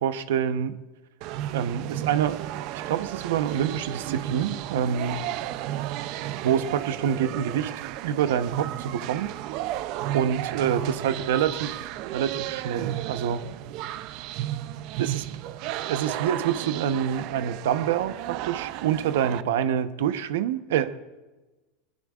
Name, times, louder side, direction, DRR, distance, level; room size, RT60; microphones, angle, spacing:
voice 1, 0.0-0.8 1.5-2.5 2.9-5.2 6.4-7.7 8.0-9.3 10.1-11.8 12.1-13.4 15.0-15.2 15.8-20.9, right 9 dB, 85° right, 11 dB, 0.9 m, -26 dB
sound 1, 1.2-19.4, right 13 dB, 45° right, 0.5 m, -33 dB
20.5 x 20.0 x 2.5 m, 1.2 s
supercardioid pair, 165°, 0 cm